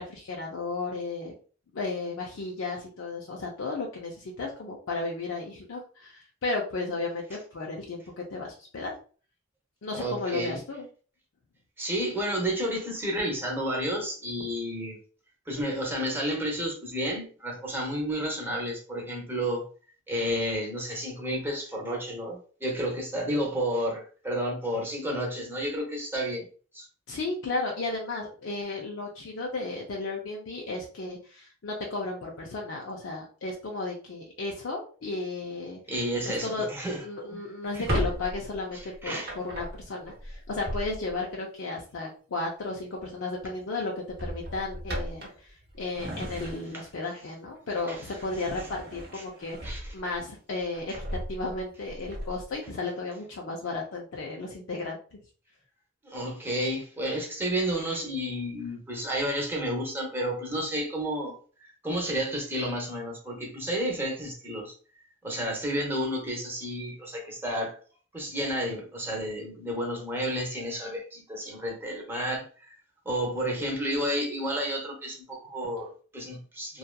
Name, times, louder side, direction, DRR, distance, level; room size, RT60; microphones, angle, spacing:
voice 1, 0.0-1.3 1.7-8.9 9.8-10.9 27.1-35.8 36.3-36.7 37.0-50.9 51.3-55.2, left 3 dB, 75° left, 0.5 m, -34 dB
voice 2, 9.9-10.6 11.8-15.0 15.5-19.7 20.1-26.5 26.7-26.9 35.9-37.4 37.7-37.8 38.7-39.4 46.7-46.8 47.9-48.0 48.4-48.5 49.1-49.2 49.6-49.9 50.9-51.0 56.0-64.7 65.2-67.8 68.1-72.8 73.0-76.8, equal, 10° right, 0.7 m, -31 dB
Drawer open or close, 37.6-41.3 42.8-43.1 43.4-43.6 44.1-47.0 47.4-50.2 50.6-52.5, equal, 55° right, 0.7 m, -36 dB
2.7 x 2.3 x 2.2 m
head